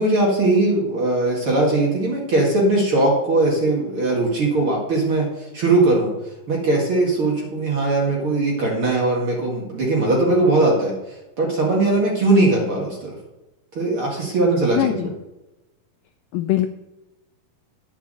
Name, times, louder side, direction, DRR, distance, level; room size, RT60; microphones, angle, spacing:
voice 1, 0.0-5.3 5.5-6.1 6.5-10.9 11.4-13.2 13.7-15.1, right 2 dB, 45° right, -2 dB, 2.2 m, -20 dB
voice 2, 14.7-15.1 16.3-16.7, left 14 dB, 80° left, 8 dB, 2.0 m, -21 dB
10.5 x 5.8 x 6.6 m, 0.98 s
omnidirectional pair, 4.3 m